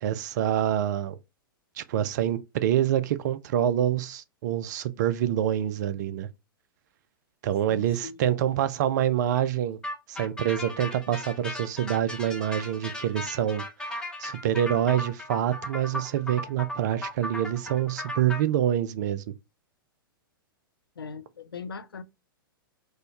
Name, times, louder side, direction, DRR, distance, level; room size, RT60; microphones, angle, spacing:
voice 1, 0.0-1.2 1.8-6.3 7.4-9.8 10.1-19.2, right 11 dB, 50° right, 0.4 m, -26 dB
voice 2, 7.7-8.2 21.0-22.0, left 5 dB, 80° left, 0.4 m, -40 dB
sound 1, 9.8-18.4, left 1 dB, 5° left, 0.8 m, -36 dB
4.2 x 2.1 x 2.9 m
figure-of-eight pair, 105°, 12 cm